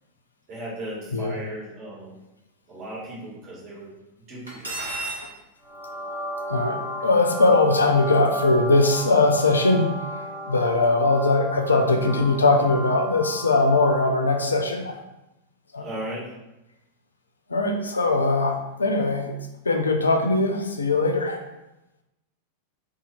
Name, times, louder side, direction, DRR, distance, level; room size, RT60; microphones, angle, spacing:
voice 1, 0.5-2.1 2.7-3.9 4.3-4.7 15.8-16.3, right 1 dB, 40° right, -6 dB, 1.5 m, -36 dB
Cutlery silverware, 4.5-5.2, right 2 dB, 75° right, 1.0 m, -31 dB
sound 1, 5.6-14.5, equal, 5° right, 0.7 m, -34 dB
voice 2, 6.5-15.0 15.7-15.9 17.5-19.3 19.7-21.4, left 2 dB, 75° left, 4 dB, 0.4 m, -21 dB
2.7 x 2.4 x 4.1 m, 0.96 s
figure-of-eight pair, 90°, 0 cm